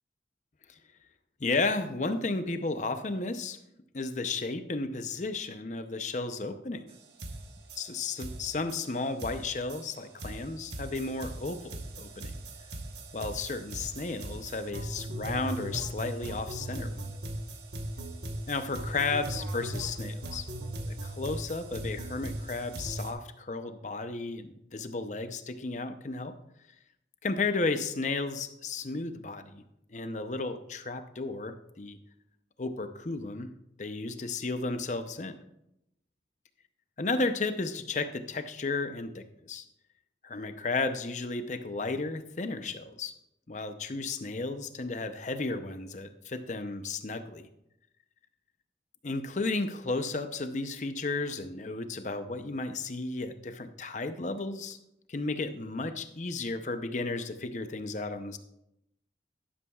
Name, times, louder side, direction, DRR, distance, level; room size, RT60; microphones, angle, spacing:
voice 1, 1.4-3.6 3.9-6.9 7.7-12.3 13.1-17.1 18.5-20.5 20.9-26.3 27.2-29.6 29.9-32.0 32.6-33.5 33.8-35.3 37.0-39.6 40.2-43.1 43.5-47.5 49.0-54.8 55.1-58.4, left 3 dB, 40° left, 9 dB, 0.6 m, -33 dB
sound 1, 6.9-7.0 7.2-23.1, right 1 dB, 70° right, 1.2 m, -39 dB
12.5 x 11.5 x 2.4 m, 0.82 s
head